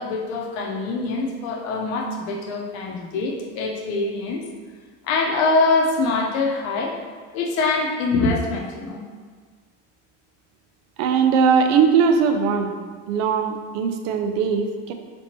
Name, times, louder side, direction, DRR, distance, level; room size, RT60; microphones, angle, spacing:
voice 1, 0.0-4.4 5.0-6.9 7.3-9.0, left 3 dB, 85° left, 0 dB, 0.7 m, -24 dB
voice 2, 11.0-12.7 13.1-14.9, right 6 dB, 90° right, 5 dB, 0.5 m, -20 dB
3.4 x 2.9 x 3.0 m, 1.5 s
cardioid pair, 125°, 36 cm